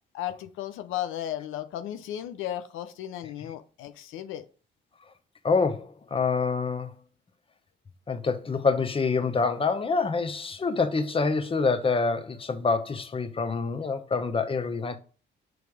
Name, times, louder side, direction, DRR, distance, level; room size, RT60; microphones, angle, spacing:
voice 1, 0.1-4.5, left 12 dB, 90° left, 0.6 m, -35 dB
voice 2, 5.4-6.9 8.1-15.0, left 4 dB, 25° left, 0.8 m, -26 dB
7.0 x 3.2 x 4.7 m
cardioid pair, 90°, 20 cm